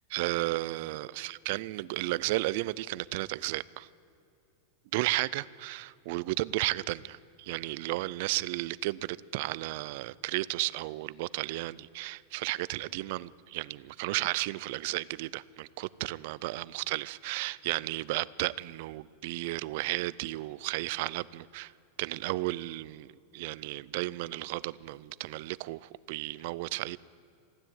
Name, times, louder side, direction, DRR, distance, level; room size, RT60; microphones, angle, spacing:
voice 1, 0.1-3.9 4.9-21.7 22.0-23.1 23.3-27.0, right 19 dB, 50° right, 20 dB, 0.4 m, -33 dB
15.5 x 9.9 x 8.7 m, 2.6 s
supercardioid pair, 165°, 0 cm